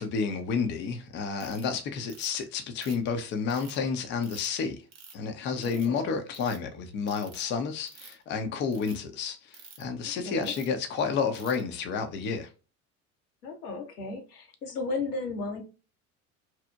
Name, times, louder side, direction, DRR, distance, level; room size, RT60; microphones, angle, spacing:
voice 1, 0.0-4.8 5.1-12.5, left 5 dB, 25° left, 0.4 m, -30 dB
Ratchet pawl, 1.4-1.6 2.1-2.4 2.8-3.8 4.2-4.5 4.9-5.2 5.6-6.0 6.3-6.6 7.1-7.4 7.8-8.2 8.7-8.9 9.5-9.8 10.4-10.7 11.3-11.6, right 6 dB, 40° right, 0.7 m, -49 dB
voice 2, 5.6-6.1 10.2-10.5 13.4-15.6, left 3 dB, 80° left, 0.7 m, -35 dB
2.8 x 2.0 x 2.2 m
figure-of-eight pair, 65°, 45 cm